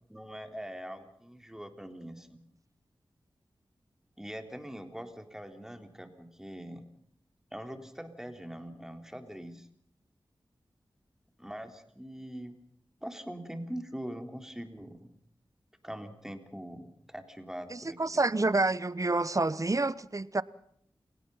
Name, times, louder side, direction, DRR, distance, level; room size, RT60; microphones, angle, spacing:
voice 1, 0.1-2.4 4.2-6.9 7.5-9.7 11.4-12.5 13.0-15.1 15.8-18.5, equal, 5° right, 3.8 m, -43 dB
voice 2, 17.7-20.4, right 2 dB, 40° right, 1.0 m, -28 dB
29.0 x 18.0 x 5.7 m
cardioid pair, 40°, 9 cm